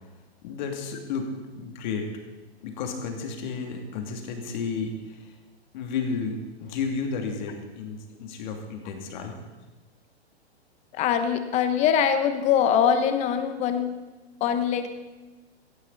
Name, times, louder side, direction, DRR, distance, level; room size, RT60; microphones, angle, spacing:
voice 1, 0.4-1.3 1.5-2.1 2.6-5.3 5.7-9.3, left 5 dB, 45° left, 3 dB, 2.7 m, -32 dB
voice 2, 10.9-13.9 14.4-14.9, left 8 dB, 20° left, 8 dB, 1.1 m, -23 dB
16.5 x 14.5 x 4.1 m, 1.2 s
hypercardioid pair, 150°, 32 cm